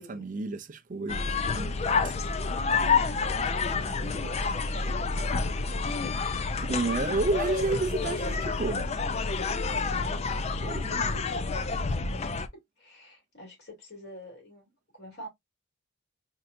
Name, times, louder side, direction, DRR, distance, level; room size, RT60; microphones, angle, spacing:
voice 1, 0.0-1.8 6.6-9.0 10.6-11.1, right 3 dB, 40° right, 0.4 m, -31 dB
sound 1, 1.1-12.5, left 4 dB, 35° left, 0.4 m, -29 dB
voice 2, 1.8-6.8 7.0-7.2 9.5-10.3 10.6-12.5 12.8-15.3, equal, 60° left, 2.9 m, -47 dB
4.4 x 2.7 x 2.5 m
head